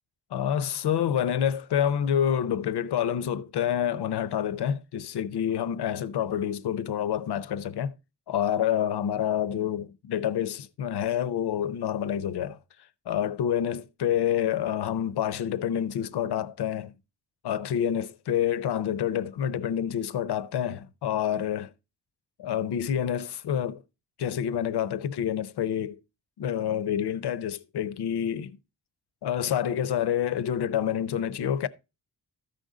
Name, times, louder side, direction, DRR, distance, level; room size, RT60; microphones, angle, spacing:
voice 1, 0.3-7.9 8.3-12.6 13.1-16.9 17.4-21.7 22.4-23.8 24.2-26.0 26.4-28.6 29.2-31.7, left 9 dB, 90° left, 0.7 m, -28 dB
13.5 x 5.2 x 3.7 m
wide cardioid pair, 175°, 39 cm